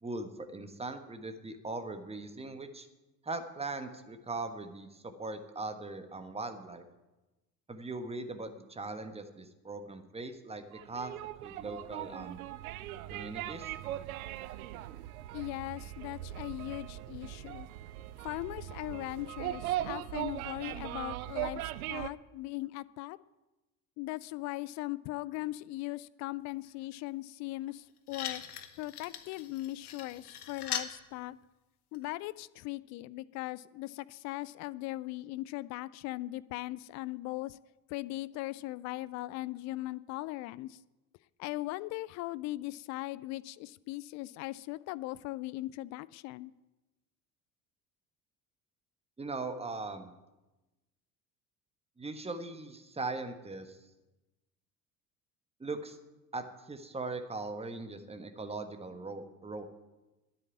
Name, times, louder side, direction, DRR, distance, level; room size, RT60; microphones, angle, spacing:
voice 1, 0.0-2.9 3.2-6.8 7.7-11.1 11.4-12.4 13.1-13.7 49.2-50.1 52.0-53.8 55.6-56.0 56.3-59.7, right 3 dB, 15° right, 9 dB, 1.5 m, -40 dB
sound 1, 10.7-22.1, right 13 dB, 65° right, 0.7 m, -39 dB
voice 2, 15.3-17.7 18.2-23.2 24.0-28.4 28.8-31.4 31.9-37.6 37.9-40.8 41.4-46.5, left 18 dB, 40° left, 18 dB, 0.4 m, -39 dB
sound 2, 27.7-27.8 28.1-30.9 31.9-32.0, left 9 dB, 75° left, 1.2 m, -40 dB
10.0 x 8.4 x 9.8 m, 1.1 s
figure-of-eight pair, 60°, 46 cm